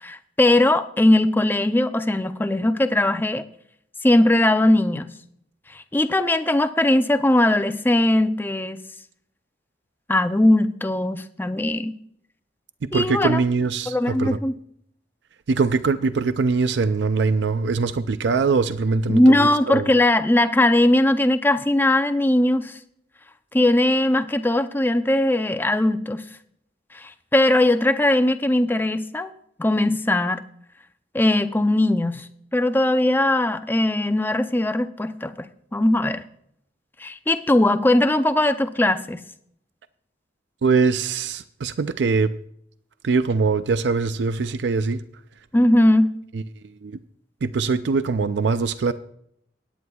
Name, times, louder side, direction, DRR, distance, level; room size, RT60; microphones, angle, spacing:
voice 1, 0.0-3.4 4.0-5.1 5.7-8.8 10.1-11.9 12.9-13.4 13.9-14.5 19.1-22.7 23.5-26.2 26.9-29.3 29.6-30.4 31.1-32.3 32.5-35.5 35.7-36.2 37.0-39.2 45.5-46.1, left 1 dB, 10° left, 11 dB, 0.5 m, -19 dB
voice 2, 12.9-14.4 15.5-19.9 40.6-42.3 43.0-45.0 46.3-46.4 46.8-47.0 47.4-48.9, right 4 dB, 70° right, 13 dB, 0.4 m, -22 dB
19.0 x 9.4 x 2.3 m, 0.69 s
head